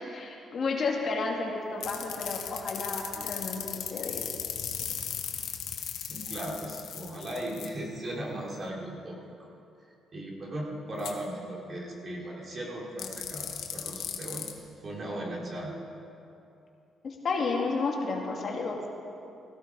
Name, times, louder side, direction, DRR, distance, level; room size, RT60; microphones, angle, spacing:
voice 1, 0.1-4.3 17.0-18.8, left 4 dB, 50° left, 0 dB, 2.4 m, -32 dB
sound 1, 1.8-7.7 11.0-11.1 13.0-14.5, left 9 dB, 80° left, 1.5 m, -36 dB
voice 2, 6.1-9.5 10.1-14.5 14.8-15.8, right 1 dB, 40° right, -2 dB, 3.5 m, -37 dB
16.5 x 15.5 x 4.9 m, 2.7 s
cardioid pair, 90°, 0 cm